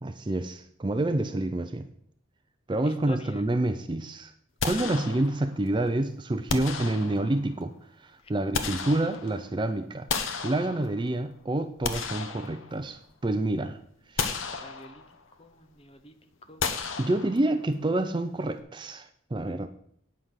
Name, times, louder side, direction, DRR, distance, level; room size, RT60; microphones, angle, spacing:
voice 1, 0.0-1.9 2.7-4.3 4.6-10.1 10.4-13.8 14.1-14.4 17.0-19.7, right 1 dB, 25° right, 9 dB, 0.4 m, -28 dB
voice 2, 2.8-3.4 14.6-15.0 15.4-16.1 16.5-16.7, left 1 dB, 25° left, 8 dB, 0.9 m, -46 dB
sound 1, 4.6-5.6 6.5-7.5 8.2-9.5 10.1-11.2 11.6-13.1 13.5-13.6 14.2-15.2 16.6-17.7, left 5 dB, 70° left, 0.9 m, -33 dB
8.8 x 5.8 x 6.4 m, 0.64 s
head